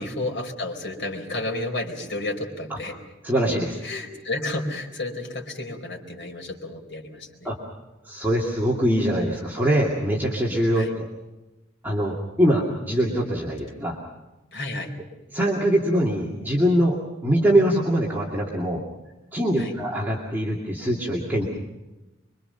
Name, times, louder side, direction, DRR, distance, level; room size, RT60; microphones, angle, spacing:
voice 1, 0.0-3.0 3.8-7.5 10.7-10.9 14.5-14.9 19.6-19.7, left 2 dB, 60° left, 2 dB, 4.4 m, -31 dB
voice 2, 3.2-3.8 7.4-7.6 8.0-11.1 11.8-14.0 15.3-18.8 19.3-21.5, equal, 10° right, -4 dB, 2.4 m, -23 dB
25.5 x 24.0 x 5.8 m, 1.0 s
head